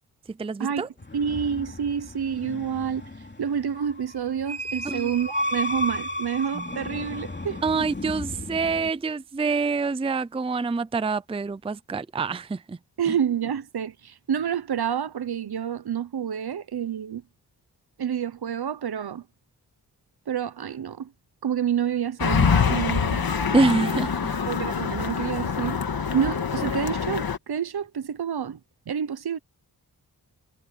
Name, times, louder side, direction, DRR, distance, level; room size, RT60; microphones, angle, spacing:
voice 1, 0.3-0.9 4.8-5.1 6.5-6.7 7.6-12.8 23.5-24.3, right 4 dB, 15° right, 0.5 m, -26 dB
sound 1, 1.0-8.9, left 1 dB, 25° left, 3.3 m, -33 dB
voice 2, 1.1-3.0 3.4-7.6 13.0-17.2 18.0-19.2 20.3-21.1 21.4-23.2 24.5-25.8 26.1-28.6 28.9-29.4, right 8 dB, 65° right, 1.0 m, -28 dB
sound 2, 22.2-27.4, left 6 dB, 60° left, 1.9 m, -25 dB
wide cardioid pair, 150°, 41 cm